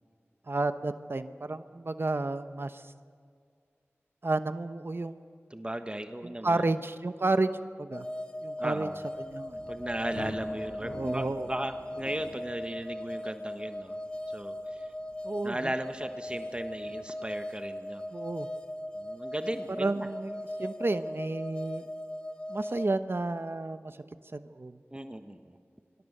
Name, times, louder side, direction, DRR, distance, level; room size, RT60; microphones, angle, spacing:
voice 1, 0.5-2.9 4.2-5.2 6.2-7.5 7.8-8.1 8.4-8.9 9.2-9.6 10.8-11.5 15.2-15.7 18.1-18.5 19.8-21.8 22.5-24.0 24.3-24.8, right 2 dB, 55° right, 10 dB, 1.0 m, -31 dB
voice 2, 5.5-6.7 8.6-9.0 9.7-14.0 14.3-14.9 15.4-18.1 18.9-20.1 24.9-25.6, right 1 dB, 20° right, 7 dB, 1.3 m, -36 dB
sound 1, 7.9-22.9, left 1 dB, 20° left, 2.3 m, -39 dB
Thunder, 8.8-20.3, left 1 dB, 55° left, 7.1 m, -49 dB
25.0 x 25.0 x 6.7 m, 2.1 s
wide cardioid pair, 50°, 5 cm